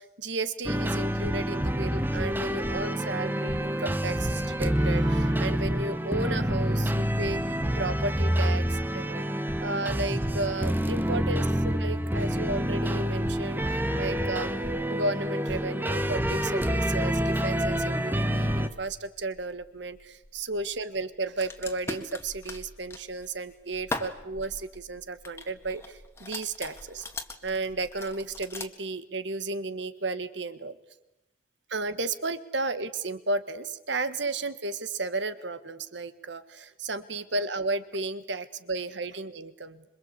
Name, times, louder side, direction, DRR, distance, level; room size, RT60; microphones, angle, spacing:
voice 1, 0.0-7.4 7.7-9.3 9.6-13.6 13.9-14.5 14.9-27.1 27.4-30.8 31.7-39.8, right 2 dB, 75° right, 12 dB, 1.7 m, -33 dB
sound 1, 0.6-18.7, equal, 10° right, 1.0 m, -27 dB
sound 2, 17.6-28.7, left 2 dB, 15° left, 1.7 m, -42 dB
26.5 x 23.5 x 8.3 m, 0.91 s
head